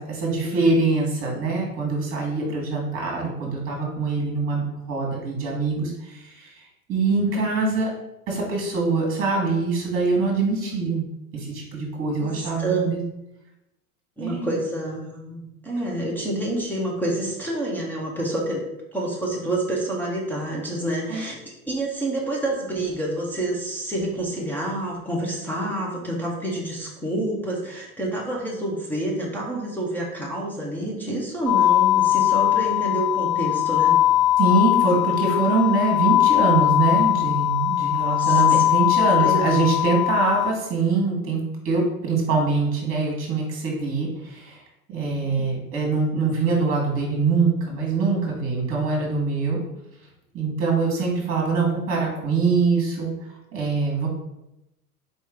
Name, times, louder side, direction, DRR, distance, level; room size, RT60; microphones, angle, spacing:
voice 1, 0.0-6.5 6.9-7.9 8.3-11.1 11.3-13.0 14.2-14.5 21.1-21.2 34.4-41.4 41.6-44.6 44.9-49.6 50.3-53.1 53.5-54.1, right 3 dB, 30° right, -1 dB, 1.7 m, -23 dB
voice 2, 12.2-12.9 14.2-18.6 18.9-21.4 21.7-34.0 37.9-38.6 39.2-39.5, right 1 dB, 5° left, -3 dB, 1.0 m, -28 dB
sound 1, 31.5-40.5, left 13 dB, 65° left, 0.7 m, -20 dB
4.3 x 3.0 x 3.8 m, 0.87 s
hypercardioid pair, 95°, 45 cm